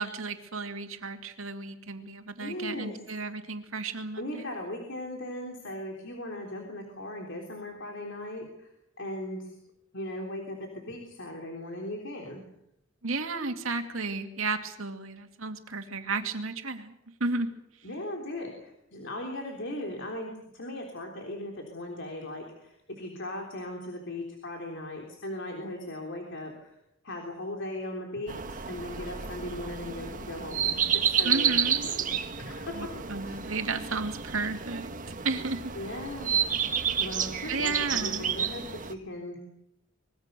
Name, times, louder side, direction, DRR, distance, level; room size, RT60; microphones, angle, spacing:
voice 1, 0.0-4.5 13.0-16.9 17.2-17.5 31.2-31.9 32.7-34.9 35.2-35.7 37.5-38.3, right 3 dB, 80° right, 6 dB, 2.5 m, -33 dB
voice 2, 2.4-3.0 4.2-8.7 9.0-9.6 9.9-12.4 17.8-26.8 27.0-32.1 32.4-33.0 33.2-33.4 35.8-36.3 37.0-39.4, left 1 dB, 60° left, 1 dB, 3.6 m, -38 dB
sound 1, 28.3-38.9, right 7 dB, 40° right, 1.4 m, -30 dB
25.0 x 22.5 x 6.9 m, 0.82 s
head